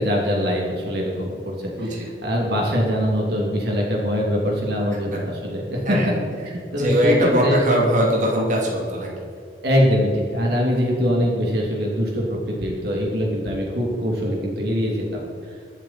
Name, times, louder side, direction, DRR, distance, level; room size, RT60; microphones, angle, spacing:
voice 1, 0.0-6.0 6.7-7.6 9.6-15.6, equal, 55° right, -2 dB, 2.7 m, -23 dB
voice 2, 1.8-2.1 5.8-6.1 6.7-9.1, equal, 40° right, -2 dB, 2.8 m, -21 dB
23.5 x 7.9 x 4.4 m, 2.2 s
head